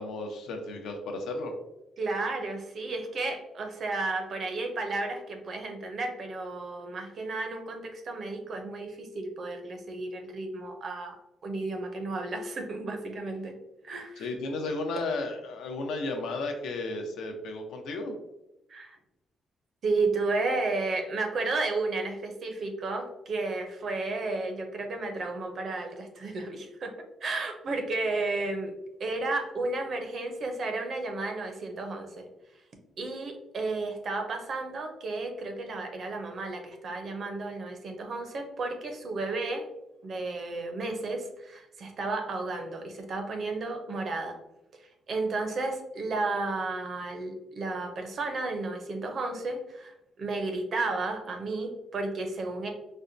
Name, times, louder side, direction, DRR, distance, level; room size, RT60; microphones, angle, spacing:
voice 1, 0.0-1.5 14.2-18.1, left 2 dB, 75° left, 3 dB, 0.6 m, -34 dB
voice 2, 2.0-11.2 11.4-13.6 13.8-14.3 18.7-19.0 19.8-26.9 27.2-28.7 29.0-32.3 33.0-39.7 40.0-44.4 45.1-52.7, right 3 dB, 40° right, 4 dB, 0.5 m, -33 dB
4.2 x 2.1 x 2.5 m, 0.89 s
cardioid pair, 170°, 0 cm